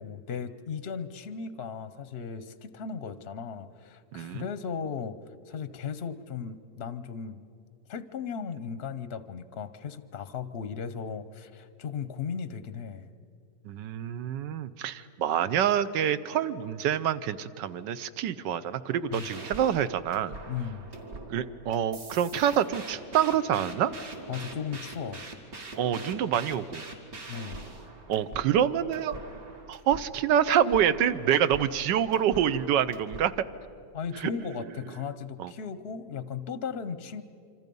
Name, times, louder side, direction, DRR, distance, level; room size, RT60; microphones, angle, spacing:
voice 1, 0.0-5.2 5.5-7.4 7.9-13.1 19.1-19.3 20.5-20.9 24.3-25.3 27.3-27.7 33.9-37.2, left 6 dB, 55° left, 13 dB, 0.7 m, -36 dB
voice 2, 4.1-4.5 13.6-20.4 21.3-23.9 25.8-26.9 28.1-29.2 29.7-33.3 34.2-34.3 35.4-35.5, right 9 dB, 85° right, 13 dB, 1.4 m, -26 dB
sound 1, 19.0-33.3, right 2 dB, 55° right, 2.4 m, -43 dB
26.5 x 26.0 x 5.4 m, 2.4 s
omnidirectional pair, 1.9 m